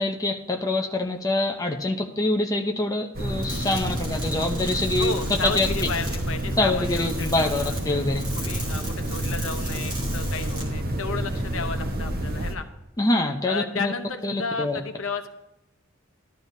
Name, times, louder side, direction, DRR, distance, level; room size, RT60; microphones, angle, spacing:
voice 1, 0.0-5.1 5.6-5.7 6.6-8.3 13.0-13.9 14.2-14.8, left 2 dB, 15° left, 2 dB, 0.6 m, -25 dB
sound 1, 3.1-12.5, right 1 dB, 45° right, 1.0 m, -29 dB
sound 2, 3.4-10.6, right 1 dB, 20° right, 2.2 m, -39 dB
voice 2, 5.0-7.7 8.3-12.6 13.4-15.3, left 4 dB, 75° left, 7 dB, 0.9 m, -33 dB
12.5 x 12.5 x 2.7 m, 0.91 s
head